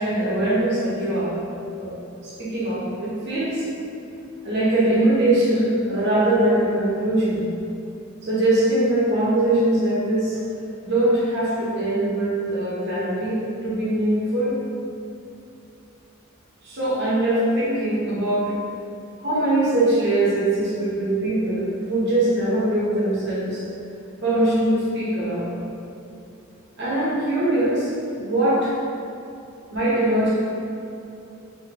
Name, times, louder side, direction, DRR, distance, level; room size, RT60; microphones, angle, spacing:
voice 1, 0.0-1.4 1.8-1.9 2.2-3.7 4.4-7.5 8.2-10.4 10.8-14.5 16.6-18.5 19.2-23.6 24.2-25.5 26.8-27.9 28.2-28.7 29.7-30.4, right 1 dB, 55° right, -8 dB, 0.8 m, -22 dB
2.7 x 2.6 x 2.7 m, 2.7 s
head